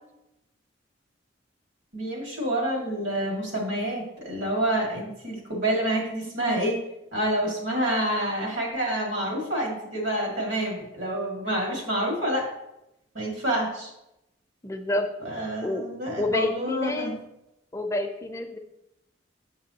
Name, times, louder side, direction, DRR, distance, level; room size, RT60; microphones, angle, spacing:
voice 1, 1.9-6.8 7.1-12.5 13.1-13.9 15.3-17.2, right 1 dB, 80° right, -1 dB, 2.1 m, -28 dB
voice 2, 14.6-15.1 15.6-15.9 16.2-17.2 17.7-18.6, left 1 dB, 15° left, 6 dB, 0.4 m, -28 dB
6.8 x 6.8 x 2.8 m, 0.88 s
head